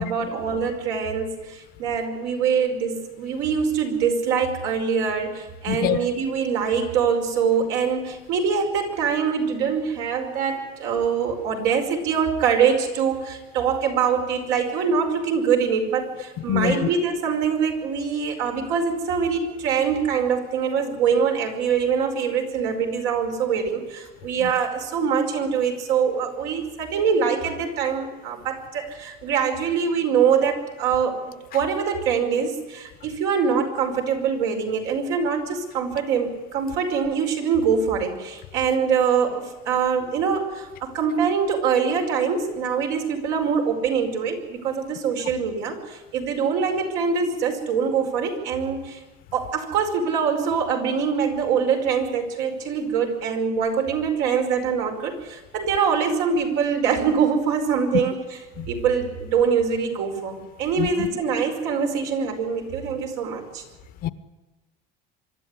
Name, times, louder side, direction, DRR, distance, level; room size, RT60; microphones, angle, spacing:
voice 1, 0.0-31.2 31.5-49.0 49.3-58.2 58.7-63.6, right 6 dB, 70° right, 5.0 m, -24 dB
voice 2, 5.7-6.0 16.5-16.9 24.4-24.5 58.6-58.7 60.8-61.1 64.0-64.1, left 10 dB, 50° left, 1.0 m, -24 dB
25.0 x 12.5 x 9.8 m
cardioid pair, 150°, 20 cm